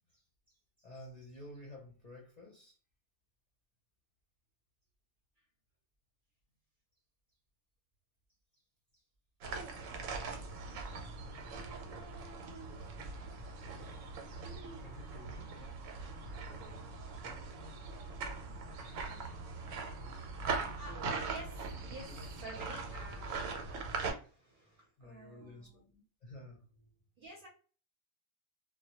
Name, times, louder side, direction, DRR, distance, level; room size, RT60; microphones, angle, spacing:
voice 1, 0.1-2.8 8.5-8.6 8.9-9.0 12.2-12.3 12.5-12.9 13.4-13.9 14.8-15.5 20.1-20.2 24.4-25.8 26.2-26.9, left 1 dB, 45° left, -3 dB, 0.5 m, -53 dB
sound 1, 9.4-24.1, right 4 dB, 85° right, 1.0 m, -41 dB
voice 2, 20.5-23.5 24.0-26.0 27.2-27.5, right 2 dB, 50° right, -1 dB, 0.7 m, -51 dB
2.1 x 2.1 x 2.8 m, 0.39 s
omnidirectional pair, 1.3 m